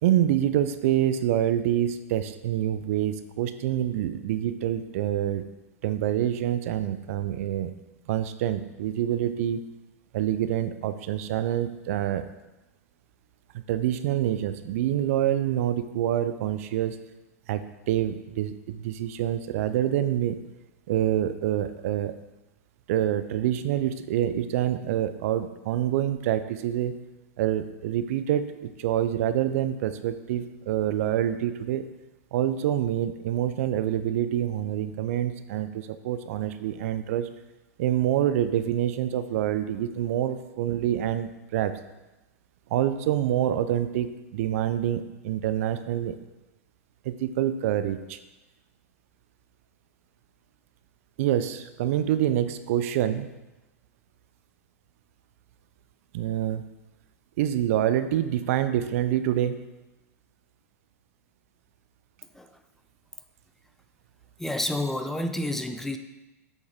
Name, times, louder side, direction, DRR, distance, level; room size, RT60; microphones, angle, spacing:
voice 1, 0.0-5.4 5.8-7.7 8.1-9.7 10.1-12.2 13.5-17.0 17.5-20.4 20.9-22.1 22.9-26.9 27.4-31.9 32.3-37.3 37.8-41.7 42.7-46.2 47.0-48.2 51.2-53.3 56.1-56.6 57.4-59.6, right 11 dB, 60° right, 11 dB, 0.5 m, -26 dB
voice 2, 64.4-66.0, left 1 dB, 5° left, 7 dB, 0.6 m, -29 dB
7.9 x 6.3 x 3.6 m, 1.0 s
hypercardioid pair, 105°, 8 cm